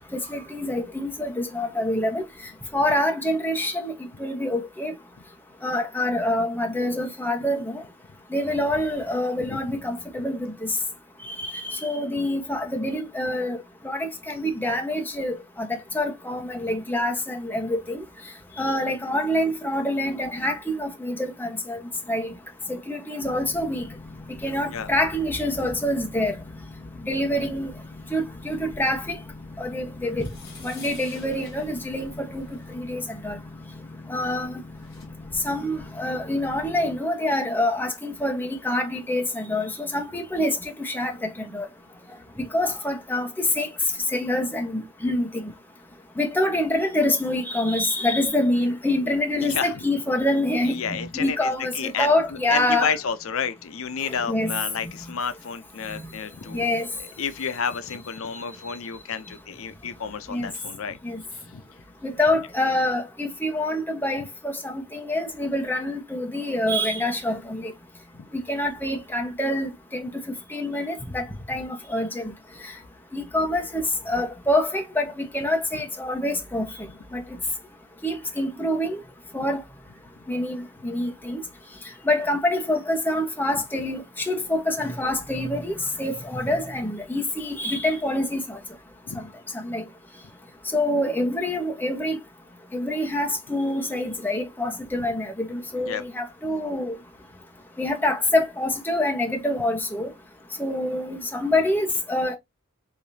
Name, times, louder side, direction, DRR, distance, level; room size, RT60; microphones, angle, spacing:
voice 1, 0.3-4.9 5.6-7.8 8.3-10.8 11.2-18.0 18.6-21.8 22.1-22.3 22.7-23.8 24.4-26.4 27.0-27.7 28.1-29.2 29.6-30.3 30.6-33.4 34.1-34.6 35.4-41.7 42.5-43.7 44.1-45.4 46.2-52.9 54.0-54.6 55.9-56.1 56.5-56.9 58.6-58.8 60.3-60.5 61.0-61.2 62.0-67.7 68.3-70.1 70.5-72.3 72.6-72.7 73.1-77.2 78.0-79.0 79.3-79.6 80.3-81.4 82.0-88.6 89.1-89.3 89.5-89.8 90.7-92.2 92.7-97.0 97.8-100.1 100.6-102.4, left 1 dB, 10° left, 1.1 m, -26 dB
Boat Water vehicle, 23.2-37.0, left 2 dB, 35° left, 0.5 m, -43 dB
sound 1, 30.1-32.7 34.4-34.5 34.7-35.1, left 4 dB, 50° left, 3.3 m, -47 dB
voice 2, 49.4-49.7 50.6-52.1 52.5-56.6 57.0-61.0 61.5-61.6 89.1-89.3 95.8-96.0, left 6 dB, 75° left, 0.6 m, -30 dB
5.1 x 3.7 x 2.7 m
head